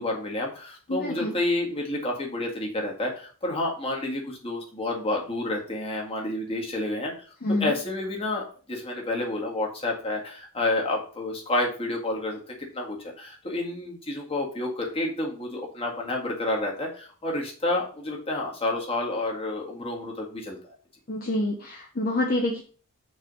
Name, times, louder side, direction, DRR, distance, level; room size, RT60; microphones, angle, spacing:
voice 1, 0.0-7.1 7.6-12.4 12.7-20.6, left 2 dB, 25° left, -1 dB, 1.8 m, -29 dB
voice 2, 0.9-1.4 7.4-7.7 21.1-22.6, left 1 dB, 40° left, 1 dB, 0.9 m, -27 dB
6.3 x 3.4 x 5.4 m, 0.41 s
head